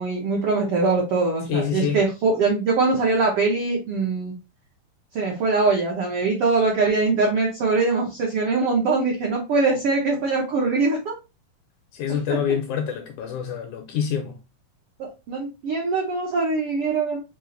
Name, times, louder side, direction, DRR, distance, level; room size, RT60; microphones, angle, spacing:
voice 1, 0.0-4.3 5.1-11.1 12.3-12.4 15.3-17.2, right 3 dB, 75° right, 1.3 m, -22 dB
voice 2, 1.5-2.0 11.9-14.4, left 8 dB, 75° left, 1.8 m, -26 dB
5.4 x 2.5 x 3.8 m
omnidirectional pair, 3.9 m